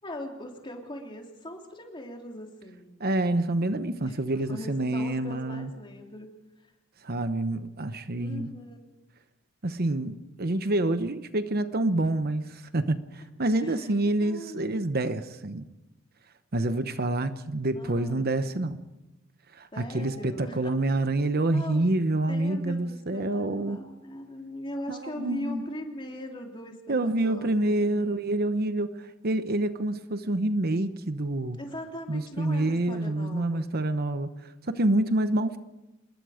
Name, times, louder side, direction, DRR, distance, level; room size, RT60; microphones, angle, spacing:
voice 1, 0.0-2.9 4.0-4.2 4.5-6.3 6.6-6.7 8.2-8.8 13.6-13.9 14.2-14.8 17.7-18.3 19.7-20.7 21.5-21.9 22.3-28.2 31.6-33.7, equal, 25° left, 3.2 m, -40 dB
voice 2, 3.0-5.7 7.0-8.5 9.6-15.7 16.5-18.8 19.5-23.8 24.9-25.6 26.9-31.6 32.1-35.6, right 2 dB, 50° right, 1.0 m, -27 dB
27.5 x 21.5 x 5.1 m
head